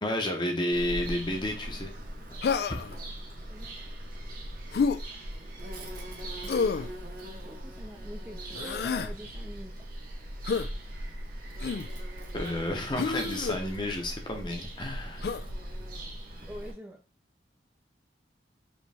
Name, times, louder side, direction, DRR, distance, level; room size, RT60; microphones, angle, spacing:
voice 1, 0.0-1.9 2.3-2.4 2.7-2.9 12.3-15.3, left 1 dB, 25° left, 3 dB, 0.9 m, -31 dB
Bird vocalization bird call bird song, 0.7-16.7, right 1 dB, 55° right, 1.2 m, -40 dB
Human voice, 2.4-3.0 4.7-5.0 6.5-6.9 8.5-9.1 10.5-10.7 11.6-11.9 13.0-13.6 15.2-15.5, left 5 dB, 60° left, 0.3 m, -29 dB
voice 2, 7.4-9.8 16.5-17.0, equal, 10° right, 2 dB, 0.5 m, -45 dB
5.1 x 3.0 x 3.4 m, 0.33 s
head